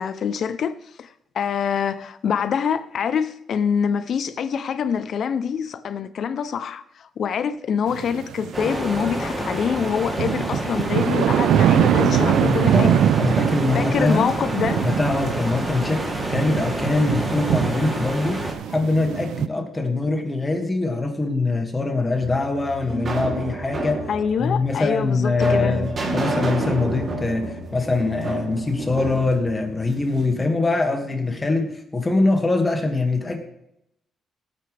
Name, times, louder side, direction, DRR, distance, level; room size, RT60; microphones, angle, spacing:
voice 1, 0.0-13.0 13.7-14.8 24.1-25.9, left 7 dB, 55° left, 0.6 m, -25 dB
sound 1, 7.9-9.6 9.9-19.5, right 10 dB, 80° right, 0.5 m, -23 dB
sound 2, 8.5-18.5, equal, 15° right, 3.0 m, -29 dB
voice 2, 12.0-14.3 14.8-18.4 18.7-24.0 24.4-33.4, left 3 dB, 20° left, 2.1 m, -23 dB
sound 3, 22.2-30.3, right 2 dB, 40° right, 3.1 m, -30 dB
17.5 x 9.1 x 3.4 m
cardioid pair, 110°, 0 cm